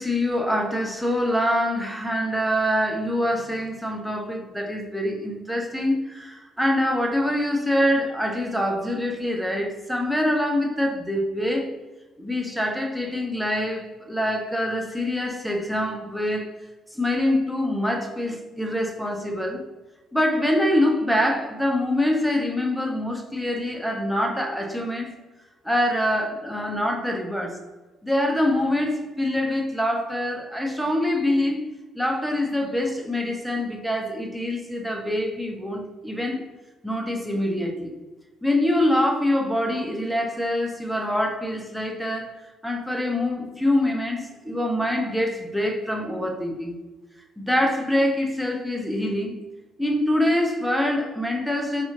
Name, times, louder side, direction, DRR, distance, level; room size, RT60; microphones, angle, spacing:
voice 1, 0.0-11.7 12.2-16.5 16.9-19.6 20.1-25.1 25.6-27.6 28.0-31.6 31.9-36.4 36.8-37.9 38.4-42.3 42.6-46.7 47.4-49.3 49.8-51.8, left 1 dB, ahead, 1 dB, 0.8 m, -25 dB
4.2 x 2.4 x 2.8 m, 1.2 s
hypercardioid pair, 50°, 0 cm